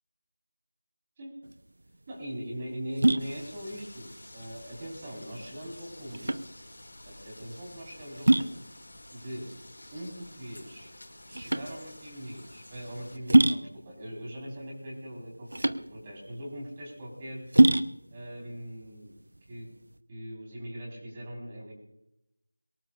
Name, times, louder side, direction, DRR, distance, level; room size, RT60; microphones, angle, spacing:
sound 1, 1.4-20.0, right 1 dB, 60° right, 0.8 m, -28 dB
voice 1, 2.1-6.4 7.0-8.7 9.1-9.5 9.9-10.9 11.3-17.5 18.1-19.1 19.5-19.7 20.1-21.7, equal, 20° right, -3 dB, 4.6 m, -41 dB
sound 2, 3.2-13.2, left 1 dB, 60° left, 3.7 m, -50 dB
23.5 x 18.5 x 2.5 m, 0.89 s
figure-of-eight pair, 170°, 0 cm